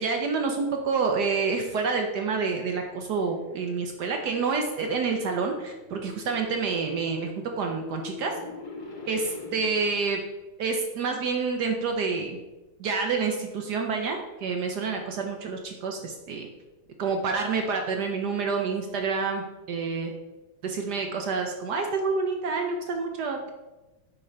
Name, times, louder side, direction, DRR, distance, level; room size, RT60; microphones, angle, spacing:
voice 1, 0.0-8.3 9.1-10.2 10.6-12.4 12.8-16.5 17.0-20.1 20.6-23.5, right 4 dB, 65° right, 3 dB, 1.1 m, -28 dB
sound 1, 3.2-10.0, left 4 dB, 30° left, 1.0 m, -44 dB
6.4 x 5.2 x 4.4 m, 1.1 s
omnidirectional pair, 2.3 m